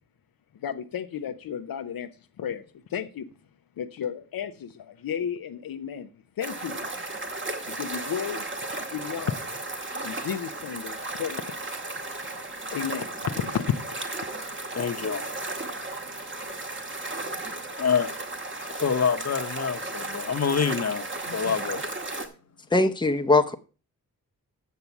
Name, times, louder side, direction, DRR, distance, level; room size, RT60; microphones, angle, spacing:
voice 1, 0.6-2.1 2.4-3.3 3.8-6.1 6.4-7.0 7.7-8.5 8.9-9.4 9.9-11.4 12.7-13.8, left 8 dB, 80° left, 0.8 m, -32 dB
sound 1, 6.4-22.3, right 2 dB, 35° right, 1.8 m, -35 dB
voice 2, 14.7-15.2 17.8-18.1 18.8-21.1 21.3-21.8, left 6 dB, 45° left, 1.2 m, -26 dB
voice 3, 22.7-23.5, left 2 dB, 15° left, 0.9 m, -21 dB
8.3 x 6.8 x 5.9 m
cardioid pair, 65°, 35 cm